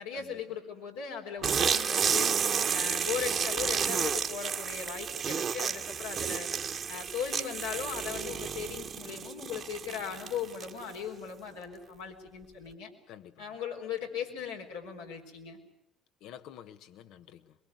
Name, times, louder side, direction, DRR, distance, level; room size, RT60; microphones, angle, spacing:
voice 1, 0.0-2.3 2.6-6.5 6.9-12.9 13.4-15.6, left 7 dB, 85° left, -1 dB, 3.9 m, -38 dB
sound 1, 1.4-10.9, right 7 dB, 50° right, 1.6 m, -31 dB
voice 2, 13.1-13.5 16.2-17.5, left 10 dB, 70° left, 10 dB, 1.3 m, -49 dB
23.0 x 22.5 x 9.5 m, 0.82 s
hypercardioid pair, 55°, 0 cm